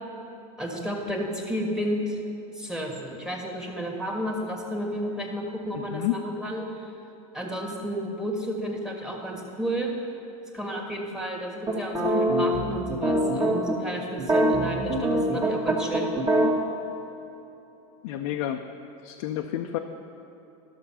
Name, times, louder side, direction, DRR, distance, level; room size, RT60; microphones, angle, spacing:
voice 1, 0.6-2.2 2.5-6.9 7.3-9.9 10.5-16.1, equal, 5° right, 0 dB, 1.5 m, -32 dB
voice 2, 5.7-6.2 18.0-18.6 19.0-19.8, left 13 dB, 70° left, 4 dB, 0.6 m, -30 dB
sound 1, 11.7-13.8 14.2-16.5, right 1 dB, 20° right, 1.4 m, -23 dB
12.5 x 6.7 x 5.6 m, 3.0 s
supercardioid pair, 130°, 18 cm